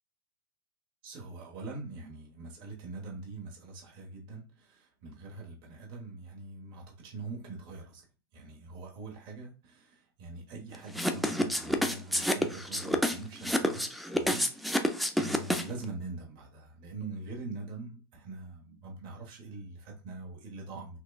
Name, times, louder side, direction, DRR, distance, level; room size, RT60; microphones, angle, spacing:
voice 1, 1.0-8.0 8.3-13.9 14.1-14.9 15.2-21.0, right 3 dB, 40° right, -1 dB, 1.2 m, -43 dB
sound 1, 10.9-15.8, equal, ahead, 0.3 m, -28 dB
5.9 x 2.3 x 2.3 m, 0.35 s
hypercardioid pair, 135°, 13 cm